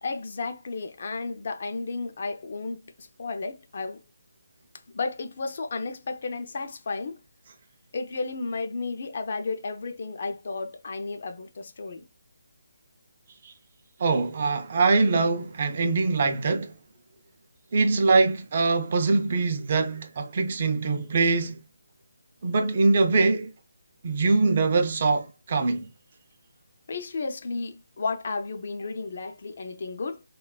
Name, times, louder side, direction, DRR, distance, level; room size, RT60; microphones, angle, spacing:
voice 1, 0.0-4.0 4.9-7.2 7.9-12.0 26.9-30.2, left 3 dB, 40° left, 0.4 m, -33 dB
voice 2, 14.0-16.7 17.7-21.6 22.4-23.5 24.0-25.9, right 3 dB, 35° right, 0.4 m, -23 dB
2.8 x 2.2 x 2.2 m
hypercardioid pair, 175°, 0 cm